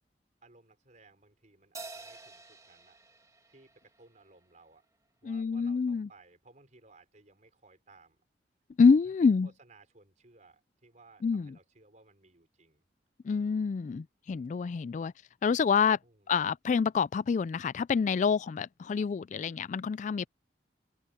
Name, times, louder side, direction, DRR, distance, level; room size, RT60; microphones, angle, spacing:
voice 1, 0.4-3.0 3.5-4.8 5.2-8.2 8.8-9.1 9.4-12.8 16.0-16.5 18.9-19.1, right 3 dB, 45° right, 4.8 m, -60 dB
Crash cymbal, 1.7-4.4, right 3 dB, 20° right, 2.0 m, -48 dB
voice 2, 5.2-6.1 8.8-9.5 11.2-11.6 13.2-15.1 15.4-16.0 16.3-20.3, left 5 dB, 45° left, 0.3 m, -27 dB
head